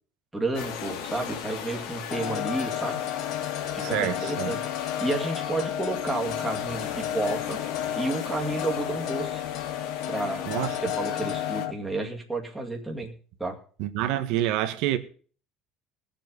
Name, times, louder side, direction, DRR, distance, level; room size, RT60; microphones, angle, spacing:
voice 1, 0.3-3.0 3.7-4.6 5.0-7.6 8.0-9.4 10.1-10.4 10.8-13.1 13.4-13.6, right 2 dB, 5° right, 2.1 m, -31 dB
sound 1, 0.5-11.7, left 8 dB, 70° left, 2.7 m, -38 dB
sound 2, 2.1-11.7, left 11 dB, 50° left, 1.0 m, -32 dB
voice 2, 3.8-4.6 10.5-10.8 13.8-15.0, right 13 dB, 65° right, 1.5 m, -27 dB
20.0 x 7.6 x 5.3 m
cardioid pair, 175°, 0 cm